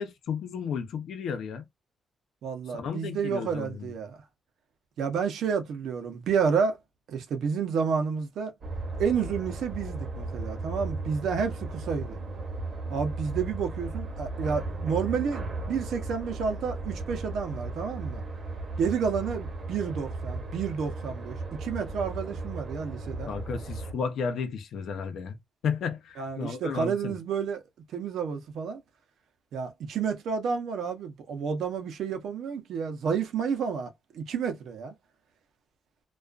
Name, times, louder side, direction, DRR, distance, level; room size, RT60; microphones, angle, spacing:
voice 1, 0.0-1.6 2.7-3.9 23.3-25.4 25.6-27.1, left 6 dB, 80° left, 0.6 m, -33 dB
voice 2, 2.4-4.2 5.0-6.8 7.1-8.5 9.0-12.2 12.9-18.2 18.8-23.3 26.2-27.6 27.9-28.8 29.5-34.9, right 6 dB, 85° right, 0.6 m, -30 dB
sound 1, 8.6-23.9, right 2 dB, 40° right, 0.8 m, -36 dB
2.3 x 2.3 x 2.2 m
cardioid pair, 135°, 0 cm